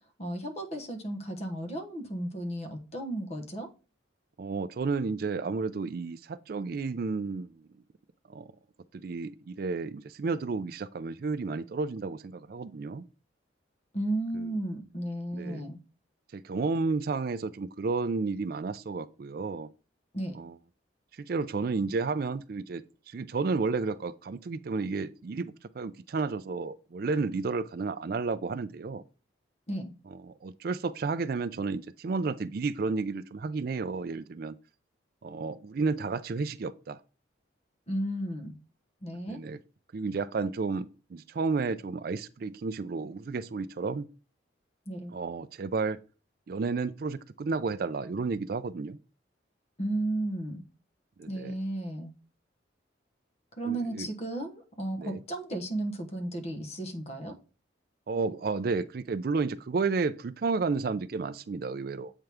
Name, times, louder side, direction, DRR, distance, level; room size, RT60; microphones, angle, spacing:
voice 1, 0.2-3.7 13.9-15.8 20.1-20.4 29.7-29.9 37.9-38.5 39.0-39.4 44.9-45.1 49.8-50.6 51.3-52.1 53.6-57.3, right 1 dB, 35° left, 1.2 m, -34 dB
voice 2, 4.4-7.7 8.3-8.5 8.9-13.0 14.3-14.5 15.3-15.6 16.3-19.7 20.3-20.6 21.1-29.0 30.1-34.6 35.2-37.0 39.3-39.6 39.9-44.1 45.1-46.0 46.5-49.0 51.2-51.5 53.7-54.1 55.0-55.2 58.1-62.1, right 4 dB, 50° right, 0.4 m, -32 dB
7.8 x 4.5 x 3.5 m
head